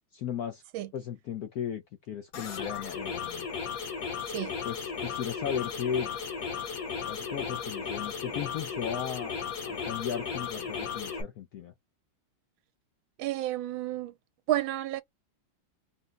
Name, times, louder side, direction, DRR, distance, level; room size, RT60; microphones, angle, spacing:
voice 1, 0.1-0.6 0.9-3.5 4.6-6.1 7.0-9.4 9.6-11.7, left 8 dB, 75° left, 0.8 m, -36 dB
sound 1, 2.3-11.2, left 6 dB, 55° left, 1.2 m, -35 dB
voice 2, 13.2-14.1 14.5-15.0, right 13 dB, 80° right, 1.4 m, -31 dB
3.9 x 2.2 x 3.8 m
omnidirectional pair, 2.2 m